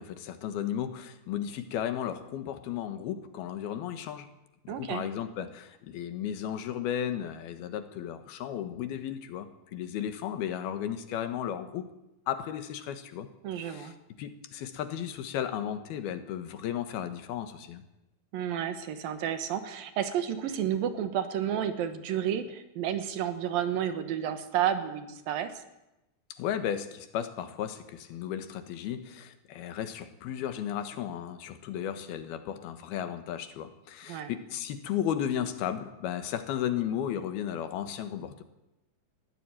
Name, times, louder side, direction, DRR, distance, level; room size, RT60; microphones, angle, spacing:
voice 1, 0.0-4.3 4.6-11.9 12.3-13.3 13.6-13.9 14.2-17.8 26.3-38.4, left 10 dB, 85° left, 9 dB, 3.3 m, -34 dB
voice 2, 4.7-5.0 13.4-13.9 18.3-25.5 34.0-34.3, right 9 dB, 75° right, 9 dB, 3.0 m, -31 dB
20.5 x 14.5 x 9.1 m, 0.92 s
omnidirectional pair, 4.3 m